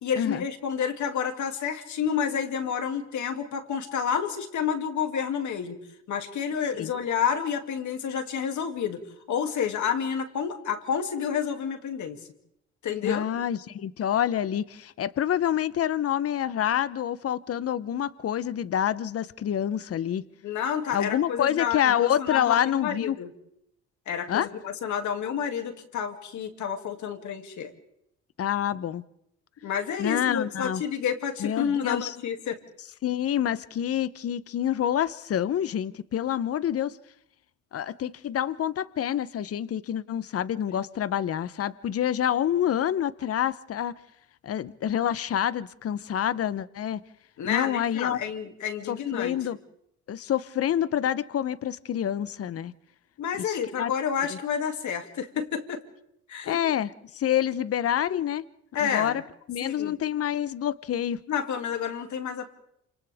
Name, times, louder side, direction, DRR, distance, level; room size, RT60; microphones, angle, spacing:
voice 1, 0.0-5.8 6.1-9.0 9.3-12.2 12.8-13.2 20.4-23.3 24.1-27.7 29.6-32.6 47.4-49.4 53.2-55.8 56.3-56.6 58.7-59.2 59.6-60.0 61.3-62.5, left 7 dB, 75° left, 5 dB, 2.6 m, -29 dB
voice 2, 13.0-20.2 20.9-23.2 24.3-24.5 28.4-29.0 30.0-30.8 31.4-32.1 33.0-37.0 37.7-43.9 44.4-47.0 47.4-48.2 48.9-49.6 50.1-52.7 53.5-53.9 56.5-56.9 57.1-58.5 58.8-59.2 59.5-61.2, left 10 dB, 50° left, 16 dB, 0.8 m, -27 dB
28.5 x 27.5 x 3.5 m, 0.76 s
cardioid pair, 90°, 30 cm